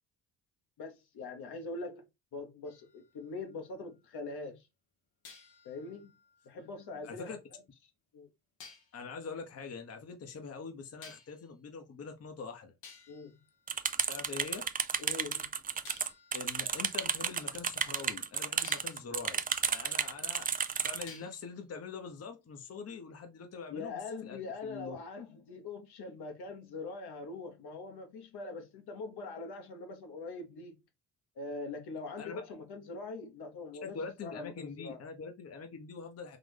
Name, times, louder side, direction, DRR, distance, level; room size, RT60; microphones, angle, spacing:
voice 1, 0.8-2.0 2.3-4.6 5.6-6.1 6.4-7.6 8.1-8.3 13.1-13.4 15.0-15.5 23.7-30.8 31.4-35.0, left 3 dB, 65° left, 1.2 m, -43 dB
sound 1, 2.6-4.1 5.2-7.4 8.6-9.0 11.0-11.6 12.3-12.4 12.8-14.5 15.8-18.0 18.6-19.1 21.1-21.6, left 5 dB, 85° left, 1.3 m, -56 dB
voice 2, 7.0-7.4 8.9-12.7 14.1-14.7 16.3-20.5 20.8-25.0 32.2-32.4 33.8-36.4, left 5 dB, 35° left, 0.9 m, -44 dB
sound 2, 13.7-21.0, right 7 dB, 20° right, 0.4 m, -32 dB
3.9 x 2.5 x 3.4 m
supercardioid pair, 65°, 42 cm